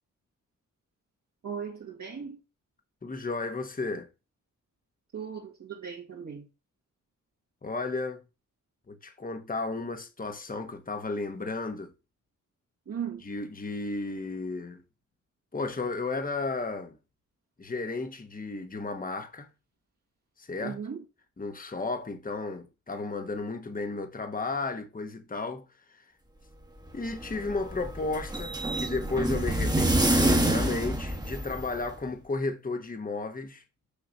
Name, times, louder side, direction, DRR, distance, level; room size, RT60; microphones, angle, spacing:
voice 1, 1.4-2.4 5.1-6.4 12.9-13.2 20.6-21.0, right 7 dB, 60° right, 2.0 m, -37 dB
voice 2, 3.0-4.1 7.6-8.2 8.9-11.9 13.2-14.8 15.5-17.0 17.6-19.5 20.4-20.8 21.4-25.6 25.9-26.0 26.9-33.6, left 3 dB, 25° left, 1.2 m, -33 dB
sound 1, 26.9-31.9, right 1 dB, 10° right, 1.4 m, -27 dB
6.7 x 3.8 x 6.2 m
cardioid pair, 60°, 32 cm